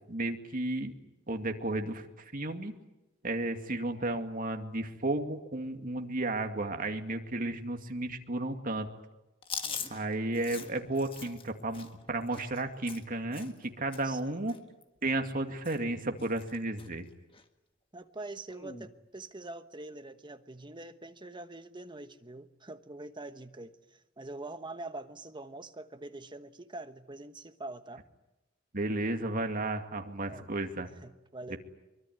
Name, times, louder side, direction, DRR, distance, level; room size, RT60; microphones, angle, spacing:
voice 1, 0.1-0.9 1.3-2.7 3.2-8.9 9.9-14.5 15.0-17.1 28.7-30.9, right 2 dB, 45° right, 4 dB, 2.3 m, -33 dB
Chewing mastication, 9.4-13.7 13.9-14.2 14.5-15.4 15.6-15.9 16.2-16.9 17.3-17.4 18.5-18.9, left 6 dB, 30° left, 1.6 m, -43 dB
voice 2, 9.6-10.1 14.0-14.4 17.9-28.0 30.3-30.5 31.0-31.6, right 2 dB, 25° right, 9 dB, 1.2 m, -44 dB
23.5 x 23.5 x 9.6 m, 1.0 s
head